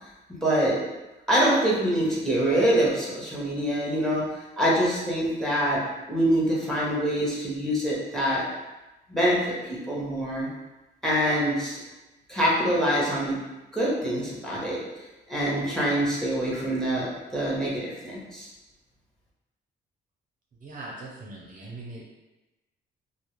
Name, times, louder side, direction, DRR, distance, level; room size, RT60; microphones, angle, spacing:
voice 1, 0.3-0.8 1.3-4.3 4.6-5.8 6.1-8.4 9.1-10.5 11.0-11.8 12.3-13.4 13.7-14.8 15.3-18.5, equal, ahead, -5 dB, 0.8 m, -25 dB
voice 2, 20.6-22.0, right 2 dB, 45° right, -3 dB, 0.5 m, -40 dB
2.3 x 2.0 x 3.0 m, 1.1 s
cardioid pair, 90°, 20 cm